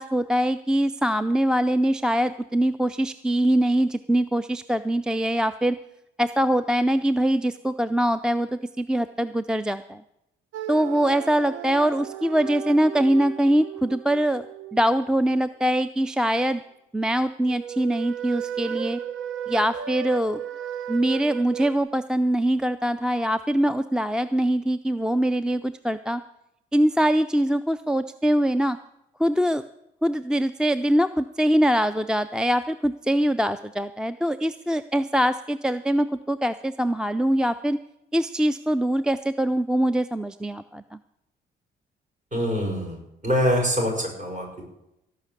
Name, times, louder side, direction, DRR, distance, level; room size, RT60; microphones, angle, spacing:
voice 1, 0.0-5.8 6.2-10.0 10.7-14.5 14.7-16.6 16.9-19.0 19.5-20.4 20.9-26.2 26.7-28.8 29.2-29.6 30.0-37.8 38.1-41.0, right 1 dB, 5° right, 13 dB, 0.4 m, -23 dB
sound 1, 10.5-15.4 17.5-21.8, right 9 dB, 80° right, 0.9 m, -35 dB
voice 2, 42.3-44.7, equal, 40° right, 0 dB, 6.6 m, -25 dB
17.5 x 5.9 x 8.3 m, 0.84 s
cardioid pair, 90°, 20 cm